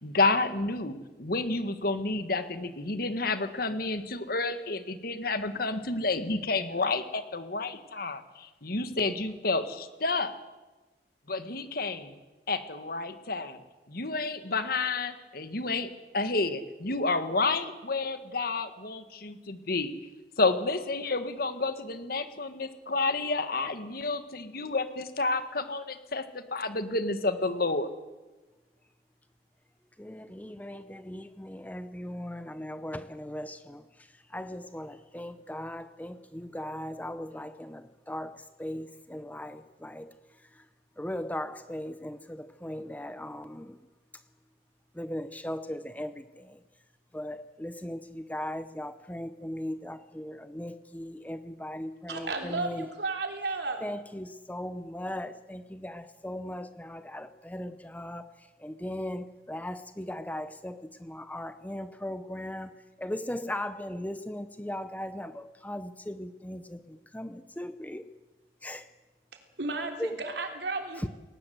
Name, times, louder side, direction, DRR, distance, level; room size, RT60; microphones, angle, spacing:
voice 1, 0.0-10.3 11.3-12.1 12.5-13.6 13.9-19.9 20.4-27.9, left 3 dB, 55° left, 10 dB, 1.7 m, -30 dB
voice 2, 30.0-40.7 41.0-43.9 44.1-44.2 44.9-46.6 47.1-52.9 53.8-68.1 68.6-68.9 70.0-70.2 71.0-71.1, left 1 dB, 10° left, 11 dB, 0.7 m, -38 dB
voice 3, 52.1-53.8 69.6-71.1, right 3 dB, 70° right, 4 dB, 3.5 m, -33 dB
20.5 x 19.0 x 7.9 m, 1.2 s
head